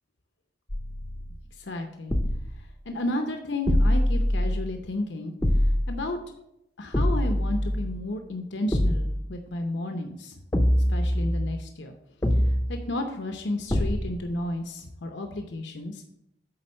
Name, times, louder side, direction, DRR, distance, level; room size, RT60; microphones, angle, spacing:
sound 1, 0.7-1.5 2.1-2.7 3.7-4.7 5.4-6.0 6.9-8.0 8.7-9.3 10.5-11.6 12.2-12.9 13.7-14.3, equal, 15° left, 0.6 m, -24 dB
voice 1, 1.6-2.1 2.9-5.3 5.9-6.2 6.8-10.3 10.9-11.9 12.7-16.0, left 1 dB, 70° left, 5 dB, 0.7 m, -32 dB
8.7 x 3.9 x 6.3 m, 0.80 s
head